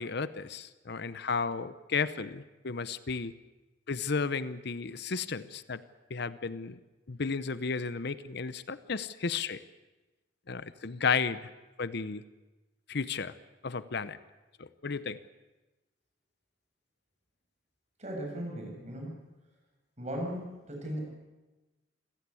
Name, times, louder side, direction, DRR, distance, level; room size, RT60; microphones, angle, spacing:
voice 1, 0.0-3.3 3.9-5.8 6.1-6.8 7.1-9.6 10.5-11.4 11.8-12.2 12.9-13.3 13.6-14.2 14.6-15.2, left 5 dB, 65° left, 14 dB, 0.8 m, -33 dB
voice 2, 18.0-19.2 20.0-21.1, equal, 40° right, 1 dB, 7.6 m, -37 dB
27.5 x 16.0 x 8.5 m, 1.1 s
head